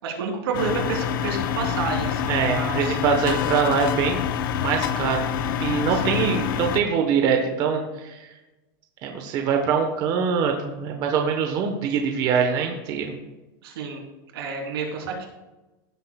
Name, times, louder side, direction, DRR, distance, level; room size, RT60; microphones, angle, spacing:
voice 1, 0.0-3.0 5.9-6.4 13.6-14.0 14.3-15.2, right 5 dB, 85° right, 0 dB, 3.1 m, -30 dB
sound 1, 0.5-6.8, left 8 dB, 70° left, 0.7 m, -26 dB
voice 2, 2.3-4.2 4.6-5.3 5.6-8.3 9.0-13.1, right 6 dB, 35° right, 3 dB, 1.0 m, -23 dB
16.0 x 7.7 x 2.3 m, 1.1 s
supercardioid pair, 165°, 12 cm